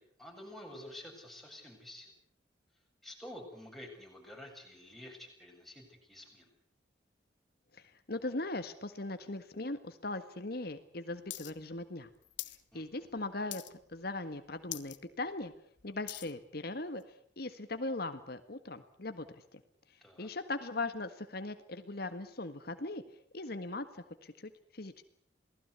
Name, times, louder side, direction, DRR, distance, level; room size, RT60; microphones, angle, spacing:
voice 1, 0.0-2.1 3.0-6.5 12.7-12.8 20.0-20.3, left 1 dB, ahead, 0 dB, 7.6 m, -49 dB
voice 2, 7.7-12.1 12.7-15.5 15.8-19.6 20.2-23.0 23.3-25.0, left 2 dB, 55° left, 9 dB, 1.7 m, -39 dB
sound 1, 11.3-11.5 11.8-12.6 13.0-13.2 13.5-14.0 14.3-14.4 14.6-15.0 15.4-16.3 17.0-17.1, left 15 dB, 80° left, 1.5 m, -43 dB
28.5 x 19.0 x 8.2 m, 0.62 s
head